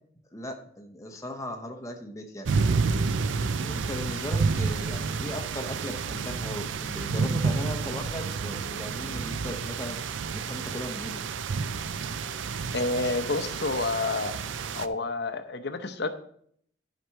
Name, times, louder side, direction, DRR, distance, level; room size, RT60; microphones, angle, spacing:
voice 1, 0.3-2.5 3.6-11.2, equal, 15° left, 2 dB, 0.8 m, -38 dB
sound 1, 2.5-14.9, right 4 dB, 80° right, 0.5 m, -30 dB
voice 2, 12.7-14.3 14.7-16.1, left 3 dB, 60° left, 9 dB, 0.8 m, -29 dB
12.0 x 5.1 x 4.6 m, 0.65 s
head